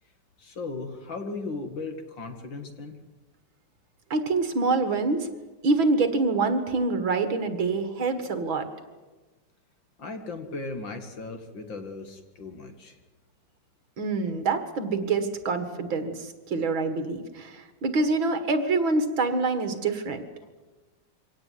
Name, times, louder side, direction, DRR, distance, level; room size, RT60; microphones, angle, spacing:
voice 1, 0.4-3.0 10.0-13.0, left 3 dB, 60° left, 6 dB, 2.7 m, -37 dB
voice 2, 4.1-5.3 5.6-8.7 14.0-16.1 16.5-20.2, right 3 dB, 65° right, 8 dB, 2.6 m, -26 dB
24.5 x 17.5 x 9.4 m, 1.2 s
omnidirectional pair, 2.4 m